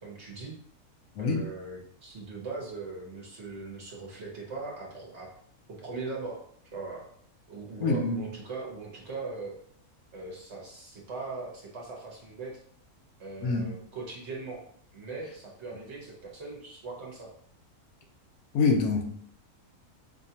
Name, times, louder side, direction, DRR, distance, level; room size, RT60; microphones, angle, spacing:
voice 1, 0.0-0.6 1.2-5.3 5.7-6.4 6.7-7.1 7.5-9.6 10.1-12.6 13.2-14.6 14.9-17.3, right 3 dB, 55° right, -2 dB, 1.0 m, -40 dB
voice 2, 7.8-8.1 13.4-13.6 18.5-19.0, left 4 dB, 75° left, 2 dB, 1.1 m, -25 dB
5.0 x 2.2 x 2.7 m, 0.63 s
omnidirectional pair, 1.6 m